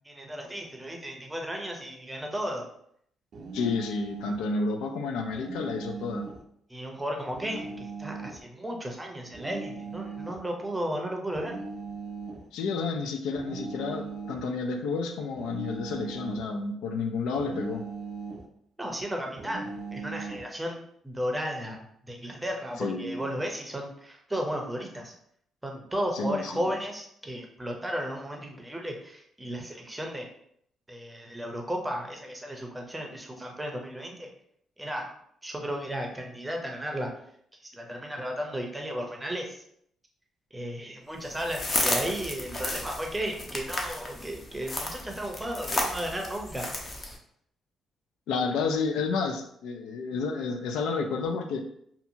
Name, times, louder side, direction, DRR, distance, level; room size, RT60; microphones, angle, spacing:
voice 1, 0.0-2.7 6.7-11.6 18.8-20.8 21.0-25.1 25.6-30.3 30.9-34.3 34.8-35.1 35.4-37.2 37.6-39.6 40.5-46.7, equal, 10° right, 2 dB, 0.6 m, -34 dB
sound 1, 3.3-4.4 5.3-6.5 7.3-8.5 9.3-10.4 11.3-12.5 13.4-14.5 15.4-16.5 17.4-18.5 19.4-20.5, right 4 dB, 60° right, 0.4 m, -39 dB
voice 2, 3.5-6.3 12.5-17.9 22.8-23.4 26.1-26.7 48.3-51.7, left 4 dB, 90° left, 4 dB, 0.3 m, -30 dB
sound 2, 41.3-47.2, left 2 dB, 35° left, 0.6 m, -33 dB
2.7 x 2.3 x 2.6 m, 0.69 s
cardioid pair, 90°, 0 cm